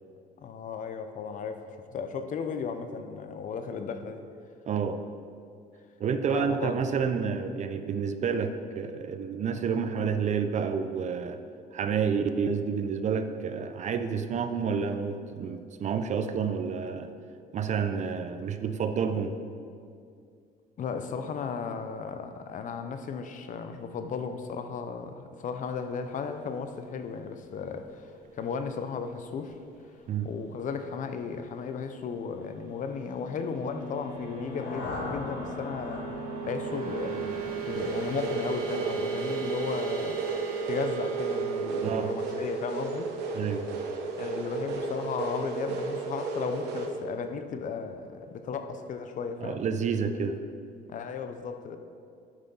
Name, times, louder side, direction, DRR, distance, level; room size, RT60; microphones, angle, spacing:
voice 1, 0.4-4.2 6.3-6.7 7.0-7.1 20.8-29.6 30.2-36.1 36.5-40.2 40.6-43.1 44.2-49.6 50.9-51.8, left 5 dB, 50° left, 8 dB, 0.7 m, -35 dB
voice 2, 4.7-5.0 6.0-11.4 11.7-17.1 17.5-19.3 30.1-30.3 41.8-42.1 43.3-43.9 49.4-50.4, right 6 dB, 45° right, 9 dB, 0.6 m, -29 dB
sound 1, 32.3-44.8, right 6 dB, 60° right, 2.1 m, -37 dB
sound 2, 34.1-38.1, left 2 dB, 80° left, 1.6 m, -40 dB
sound 3, 37.7-46.9, right 3 dB, 80° right, 1.1 m, -34 dB
8.1 x 6.2 x 5.4 m, 2.4 s
cardioid pair, 110°, 17 cm